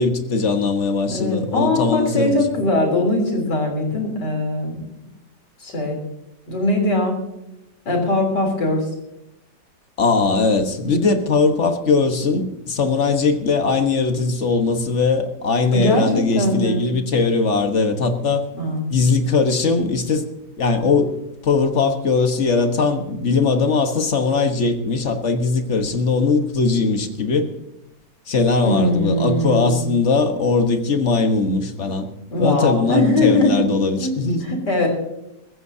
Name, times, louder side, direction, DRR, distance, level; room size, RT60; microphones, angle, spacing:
voice 1, 0.0-2.4 10.0-18.4 18.9-20.2 20.6-21.2 21.4-27.5 28.3-32.1 32.4-34.6, left 4 dB, 45° left, 6 dB, 1.5 m, -20 dB
voice 2, 1.1-4.8 5.6-6.0 6.5-7.2 7.9-8.9 15.7-16.9 18.5-18.9 28.6-29.9 32.3-33.6 34.0-34.1 34.5-34.9, left 2 dB, 75° left, 1 dB, 4.2 m, -21 dB
22.5 x 14.5 x 2.8 m, 0.87 s
omnidirectional pair, 1.9 m